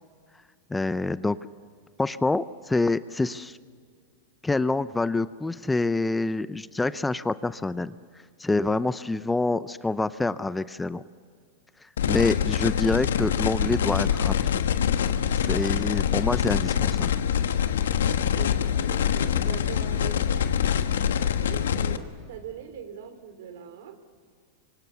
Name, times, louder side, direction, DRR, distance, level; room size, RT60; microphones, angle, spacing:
voice 1, 0.7-1.4 2.0-3.6 4.4-7.9 8.4-11.0 12.1-14.6 15.4-17.1, left 3 dB, 10° left, 15 dB, 0.5 m, -26 dB
sound 1, 12.0-22.0, left 9 dB, 90° left, 1.2 m, -25 dB
voice 2, 18.2-20.5 21.2-24.0, right 8 dB, 70° right, 10 dB, 2.9 m, -41 dB
26.5 x 25.0 x 6.9 m, 2.1 s
hypercardioid pair, 125°, 0 cm